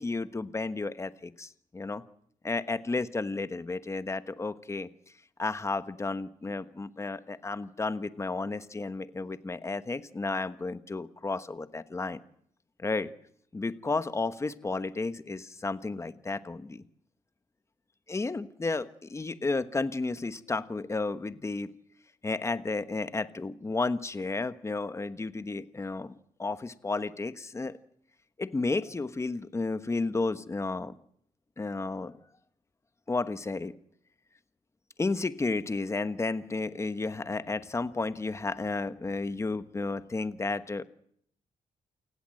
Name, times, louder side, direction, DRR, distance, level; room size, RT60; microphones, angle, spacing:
voice 1, 0.0-2.0 2.4-4.9 5.4-12.2 12.8-13.1 13.5-16.8 18.1-21.7 22.2-27.8 28.4-30.9 31.6-32.1 33.1-33.7 35.0-40.8, left 3 dB, 20° left, 12 dB, 1.2 m, -32 dB
28.5 x 19.5 x 7.7 m, 0.69 s
wide cardioid pair, 150°, 14 cm